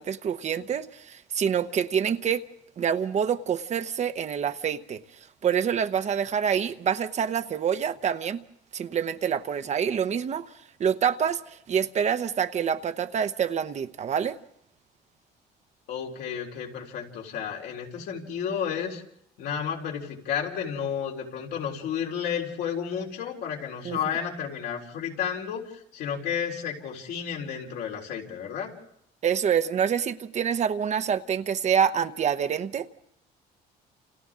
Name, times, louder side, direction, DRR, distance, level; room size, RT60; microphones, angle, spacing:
voice 1, 0.0-2.4 2.8-5.0 5.4-8.4 8.7-10.5 10.8-11.4 11.7-14.4 23.8-24.0 29.2-32.9, right 8 dB, 45° right, 0.8 m, -26 dB
voice 2, 15.9-19.0 19.4-28.7, left 8 dB, 80° left, 4.0 m, -32 dB
29.0 x 28.5 x 3.7 m
cardioid pair, 110°, 17 cm